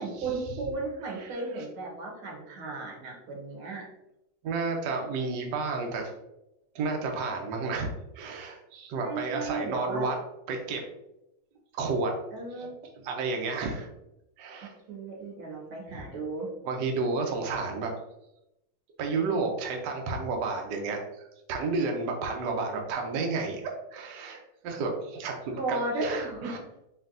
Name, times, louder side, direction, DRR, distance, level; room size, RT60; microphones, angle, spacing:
voice 1, 0.0-3.9 9.0-10.1 12.3-12.7 14.6-16.5 25.5-26.6, right 3 dB, 85° right, -1 dB, 1.9 m, -35 dB
voice 2, 1.1-1.6 4.4-6.1 6.7-7.9 8.1-10.2 10.5-10.8 11.7-12.1 12.5-12.7 13.0-13.9 14.4-14.7 15.9-16.0 16.6-17.9 19.0-26.6, right 4 dB, 70° right, 2 dB, 1.1 m, -31 dB
4.4 x 3.3 x 2.5 m, 0.87 s
omnidirectional pair, 2.2 m